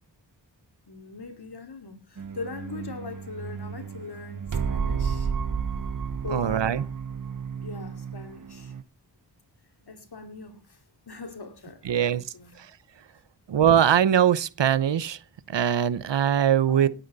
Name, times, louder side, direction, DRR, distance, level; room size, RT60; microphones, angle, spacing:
voice 1, 0.9-5.3 6.2-6.9 7.6-8.7 9.8-10.8 11.1-12.5 16.7-16.9, left 4 dB, 60° left, 2.8 m, -41 dB
sound 1, 2.2-8.8, right 6 dB, 45° right, 0.9 m, -32 dB
voice 2, 6.3-6.8 11.8-12.2 12.6-12.7 13.5-15.2 15.5-16.9, right 9 dB, 80° right, 0.8 m, -22 dB
18.0 x 9.1 x 4.0 m
cardioid pair, 50°, 43 cm